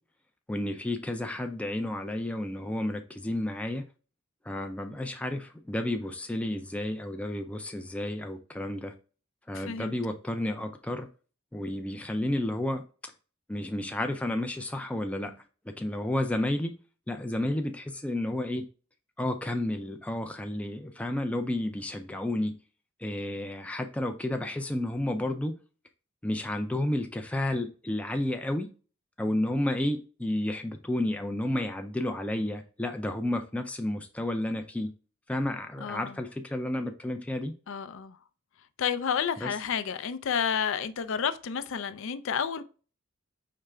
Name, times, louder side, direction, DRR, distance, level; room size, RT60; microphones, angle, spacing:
voice 1, 0.5-3.9 4.4-8.9 9.5-11.1 11.5-12.8 13.5-15.3 15.7-16.7 17.1-18.6 19.2-22.6 23.0-25.6 26.2-28.7 29.2-34.9 35.3-37.5 39.4-39.5, left 1 dB, 5° left, 0.4 m, -31 dB
voice 2, 9.5-10.0 35.8-36.2 37.7-38.2 38.8-42.6, left 7 dB, 65° left, 0.5 m, -30 dB
4.9 x 3.2 x 3.4 m
head